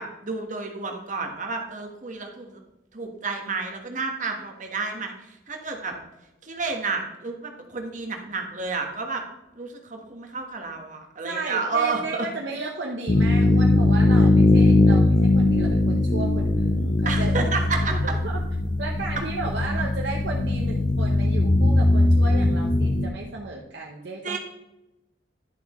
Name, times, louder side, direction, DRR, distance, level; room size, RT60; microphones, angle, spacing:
voice 1, 0.0-2.6 2.9-5.1 5.5-6.0 6.4-9.2 9.6-12.3 17.0-18.1 24.2-24.4, right 4 dB, 40° right, 3 dB, 1.3 m, -30 dB
voice 2, 11.2-17.5 17.9-18.4 18.8-24.4, right 3 dB, 60° right, -1 dB, 0.9 m, -34 dB
sound 1, 13.1-23.1, left 2 dB, 40° left, 0.5 m, -20 dB
11.0 x 7.1 x 3.1 m, 0.93 s
head